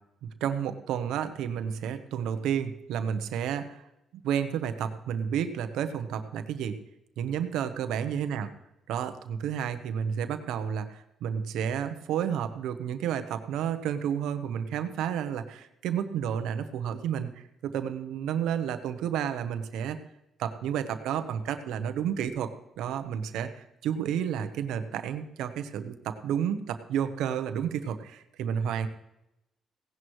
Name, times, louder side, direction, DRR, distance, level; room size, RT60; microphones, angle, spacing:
voice 1, 0.2-3.8 4.2-6.8 7.2-8.5 8.9-20.0 20.4-28.9, right 8 dB, 85° right, 10 dB, 0.9 m, -31 dB
17.0 x 11.0 x 3.2 m, 0.88 s
cardioid pair, 90°, 0 cm